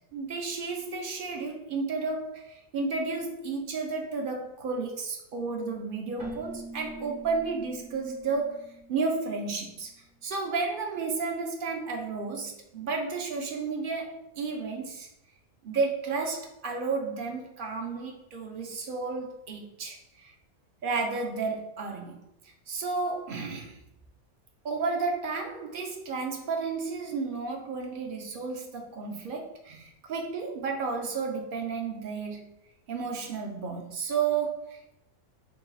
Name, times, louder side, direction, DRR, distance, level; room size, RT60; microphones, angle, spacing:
voice 1, 0.1-8.6 8.9-9.9 10.2-15.1 15.6-20.3 20.8-23.8 24.6-32.5 32.9-34.9, right 4 dB, 70° right, 2 dB, 0.5 m, -32 dB
Keyboard (musical), 6.2-9.8, right 2 dB, 40° right, 1.1 m, -44 dB
3.9 x 3.8 x 2.3 m, 0.81 s
omnidirectional pair, 1.5 m